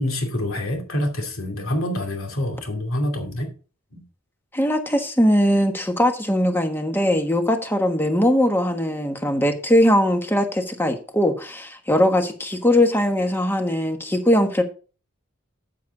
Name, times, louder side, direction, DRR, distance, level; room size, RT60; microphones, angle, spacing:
voice 1, 0.0-3.5 3.9-4.0, left 1 dB, 75° left, 2.7 m, -26 dB
voice 2, 4.5-14.6, equal, 10° left, 1.3 m, -20 dB
8.5 x 7.6 x 3.9 m
head